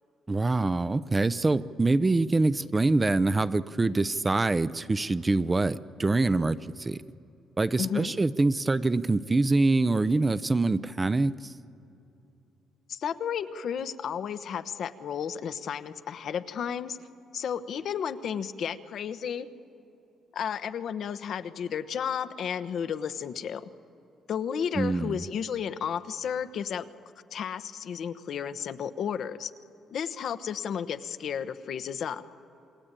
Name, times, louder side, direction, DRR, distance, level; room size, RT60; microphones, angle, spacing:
voice 1, 0.3-7.0 7.6-11.5 24.8-25.2, right 3 dB, 25° right, 15 dB, 0.7 m, -25 dB
voice 2, 7.8-8.2 12.9-17.0 17.3-19.5 20.3-23.7 24.3-26.9 27.3-29.5 29.9-32.2, left 8 dB, 65° left, 12 dB, 1.1 m, -33 dB
28.0 x 20.5 x 9.0 m, 3.0 s
cardioid pair, 90°, 0 cm